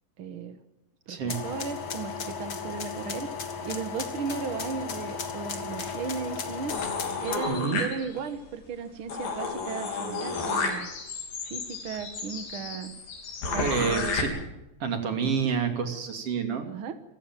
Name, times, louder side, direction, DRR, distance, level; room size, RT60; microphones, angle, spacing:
voice 1, 0.2-0.6 1.1-3.3 3.6-6.8 7.2-10.9 11.4-12.9 13.5-14.2 16.6-16.9, right 6 dB, 70° right, 10 dB, 1.2 m, -36 dB
sound 1, 1.3-7.4, left 5 dB, 40° left, 1.7 m, -35 dB
sound 2, 6.7-8.4 8.8-8.9 9.1-14.2, left 4 dB, 70° left, 5.8 m, -32 dB
voice 2, 7.5-7.8 13.6-14.3 14.8-16.7, right 6 dB, 40° right, 5 dB, 3.4 m, -28 dB
27.0 x 15.5 x 7.6 m, 0.97 s
omnidirectional pair, 4.4 m